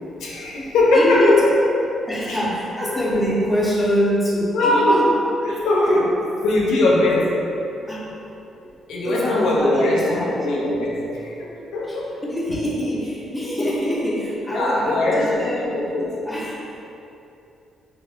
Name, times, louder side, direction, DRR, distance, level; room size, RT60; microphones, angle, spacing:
voice 1, 0.2-1.4 2.3-2.4 4.5-5.1 5.4-6.2 6.4-7.4 8.9-12.1 14.5-16.1, left 2 dB, 85° left, -4 dB, 0.5 m, -20 dB
voice 2, 0.9-1.5 2.1-5.1 5.5-5.6 5.9-6.0 7.9-8.1 9.0-10.5 11.8-15.9 16.2-16.8, equal, 5° left, -7 dB, 0.7 m, -24 dB
2.8 x 2.7 x 2.4 m, 2.8 s
cardioid pair, 90°, 0 cm